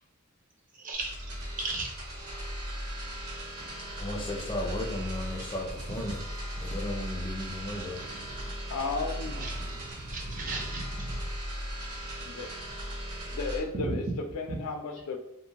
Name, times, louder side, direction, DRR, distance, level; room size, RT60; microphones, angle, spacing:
voice 1, 0.8-1.1 1.6-1.9 7.9-8.2 9.4-11.2 13.9-14.0 14.5-14.6, right 2 dB, 35° right, 1 dB, 0.5 m, -36 dB
sound 1, 0.9-13.6, equal, 75° right, 1.2 m, -37 dB
voice 2, 4.0-6.2 6.5-8.2, left 1 dB, 20° left, -1 dB, 0.4 m, -35 dB
voice 3, 8.7-9.5 12.2-12.5 13.3-15.2, left 3 dB, 80° left, 6 dB, 0.4 m, -34 dB
2.8 x 2.1 x 2.8 m, 0.79 s
head